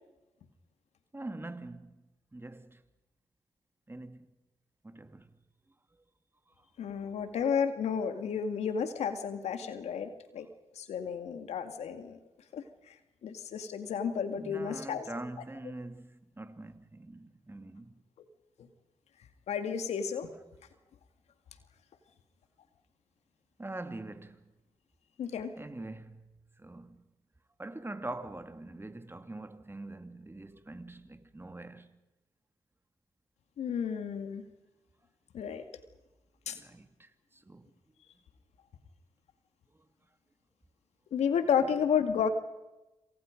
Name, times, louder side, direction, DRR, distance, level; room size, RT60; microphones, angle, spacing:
voice 1, 1.1-2.0 2.3-2.8 3.9-4.3 4.8-5.3 14.4-17.9 23.6-24.5 25.6-27.0 27.6-32.0 36.5-37.7, right 2 dB, 20° right, 2.4 m, -44 dB
voice 2, 6.8-10.5 10.8-12.2 12.5-12.9 13.2-15.1 19.5-20.3 25.2-25.5 33.6-34.5 35.3-35.6 36.5-36.6 41.1-42.3, left 7 dB, 75° left, 2.2 m, -32 dB
27.5 x 27.0 x 5.3 m
supercardioid pair, 50°, 11 cm